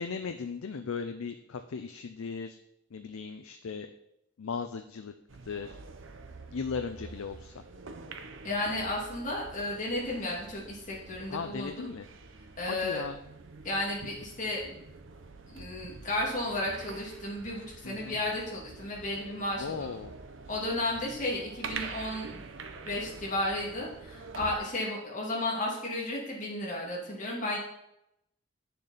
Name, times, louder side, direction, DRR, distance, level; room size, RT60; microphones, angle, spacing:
voice 1, 0.0-2.6 2.9-3.9 4.4-5.1 5.5-5.8 6.5-7.6 11.3-12.1 12.7-13.2 17.8-18.2 19.6-20.1, left 5 dB, 85° left, 7 dB, 0.5 m, -37 dB
sound 1, 5.3-24.6, right 4 dB, 70° right, 0.7 m, -46 dB
voice 2, 8.4-11.9 12.6-13.0 13.6-14.8 15.5-19.9 20.5-22.4 22.8-27.6, left 1 dB, 35° left, -4 dB, 2.4 m, -33 dB
8.5 x 6.7 x 4.1 m, 0.83 s
head